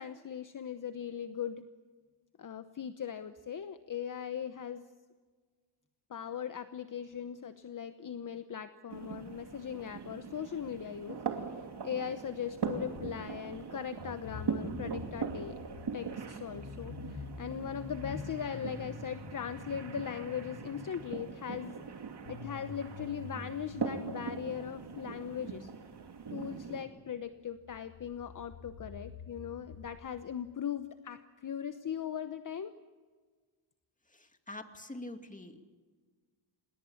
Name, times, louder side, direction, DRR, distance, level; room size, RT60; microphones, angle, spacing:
voice 1, 0.0-1.7 2.4-4.8 6.1-11.2 11.8-15.7 15.9-21.8 22.3-25.7 26.3-32.7, left 8 dB, 40° left, 11 dB, 1.0 m, -39 dB
sound 1, 8.9-26.8, right 6 dB, 55° right, 2.8 m, -41 dB
sound 2, 12.7-13.6 13.9-26.1 27.3-27.4 27.6-30.2, left 4 dB, 65° left, 2.7 m, -47 dB
voice 2, 34.1-35.6, left 1 dB, 15° left, 6 dB, 2.4 m, -45 dB
27.0 x 21.0 x 7.2 m, 1.4 s
cardioid pair, 85°, 50 cm